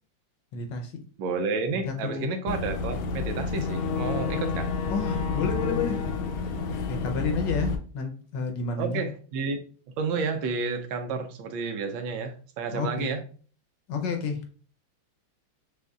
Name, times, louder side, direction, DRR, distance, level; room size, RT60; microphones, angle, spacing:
voice 1, 0.5-1.0 1.7-2.2 4.9-6.0 6.9-9.0 12.7-13.1 13.9-14.4, left 5 dB, 70° left, 4 dB, 1.3 m, -30 dB
voice 2, 1.2-4.7 8.8-9.6 10.0-13.2, right 4 dB, 80° right, 6 dB, 1.3 m, -30 dB
Boat Water vehicle / Engine, 2.5-7.8, left 4 dB, 85° left, 1.4 m, -29 dB
6.4 x 2.5 x 2.3 m, 0.41 s
omnidirectional pair, 2.2 m